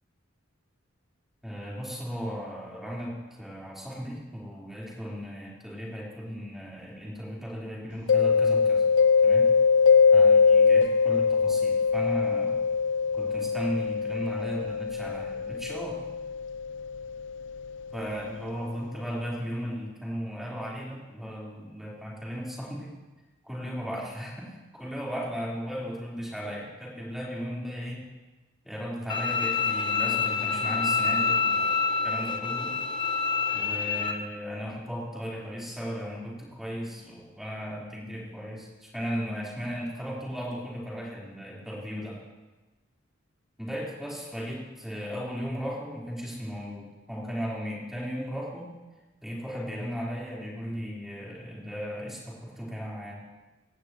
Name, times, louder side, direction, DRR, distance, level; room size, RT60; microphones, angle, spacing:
voice 1, 1.4-8.9 9.2-9.5 10.1-12.6 13.1-16.0 17.9-22.9 23.4-28.0 28.6-31.7 32.0-32.8 33.5-42.2 43.6-48.7 49.2-53.2, equal, ahead, -6 dB, 4.1 m, -36 dB
Mallet percussion, 8.1-17.7, left 5 dB, 75° left, 0.7 m, -22 dB
Bowed string instrument, 29.1-34.1, left 5 dB, 25° left, 1.0 m, -27 dB
18.5 x 16.5 x 3.1 m, 1.1 s
head